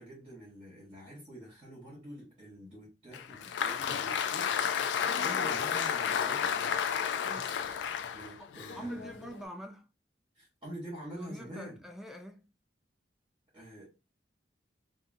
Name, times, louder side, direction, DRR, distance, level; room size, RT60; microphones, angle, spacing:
voice 1, 0.0-6.8 8.1-9.1 10.3-11.8 13.5-13.9, equal, 30° right, 1.1 m, -47 dB
Applause, 3.1-9.4, left 7 dB, 80° left, 0.3 m, -32 dB
voice 2, 7.2-7.6 8.8-9.9 11.1-12.5, right 1 dB, ahead, 0.3 m, -44 dB
2.6 x 2.5 x 2.5 m
head